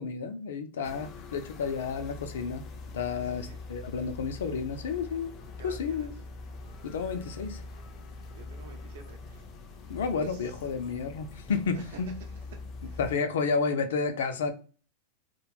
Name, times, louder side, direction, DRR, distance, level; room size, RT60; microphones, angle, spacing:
voice 1, 0.0-2.6 2.9-5.4 5.6-6.1 6.8-7.6 9.9-12.1 13.0-14.5, left 5 dB, 85° left, 0.5 m, -31 dB
sound 1, 0.8-13.1, left 3 dB, 35° left, 0.5 m, -43 dB
voice 2, 3.1-3.6 5.6-6.1 7.0-7.1 8.3-9.5 10.2-10.6 11.7-13.0, right 5 dB, 70° right, 0.8 m, -50 dB
2.9 x 2.2 x 2.4 m
supercardioid pair, 135°, 0 cm